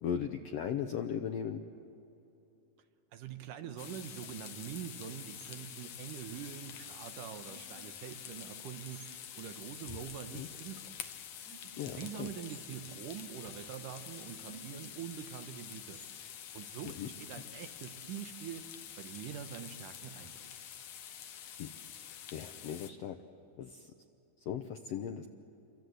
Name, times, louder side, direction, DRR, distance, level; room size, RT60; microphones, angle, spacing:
voice 1, 0.0-1.6 10.3-10.5 11.8-12.3 16.8-17.1 21.6-21.7 22.3-23.2 23.6-23.9 24.4-25.3, left 8 dB, 80° left, 7 dB, 1.4 m, -37 dB
voice 2, 3.1-11.2 11.6-18.6 19.0-20.5, right 9 dB, 75° right, 8 dB, 2.6 m, -45 dB
sound 1, 3.6-4.2 5.3-5.7 6.7-6.8 7.4-8.0 8.9-9.2 11.4-11.9 12.5-12.7 13.4-13.7 14.4-14.9 15.9-16.2, right 3 dB, 50° right, 5.4 m, -56 dB
sound 2, 3.8-22.9, left 9 dB, 65° left, 1.8 m, -47 dB
30.0 x 24.0 x 8.0 m, 2.7 s
omnidirectional pair, 3.9 m